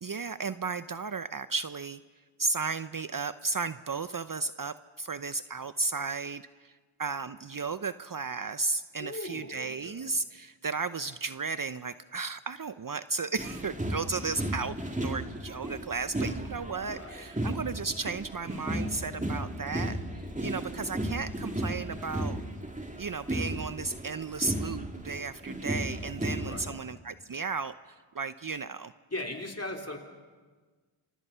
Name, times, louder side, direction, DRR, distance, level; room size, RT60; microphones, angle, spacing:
voice 1, 0.0-2.0 2.4-6.7 7.0-20.0 20.4-22.4 23.0-28.9, right 4 dB, 40° right, 13 dB, 0.7 m, -34 dB
voice 2, 9.0-10.1 16.9-17.3 26.4-26.8 29.1-30.0, left 2 dB, 30° left, 2 dB, 4.0 m, -39 dB
sound 1, 13.4-26.7, right 1 dB, 15° right, 2.6 m, -35 dB
28.5 x 24.5 x 5.7 m, 1.4 s
cardioid pair, 40°, 50 cm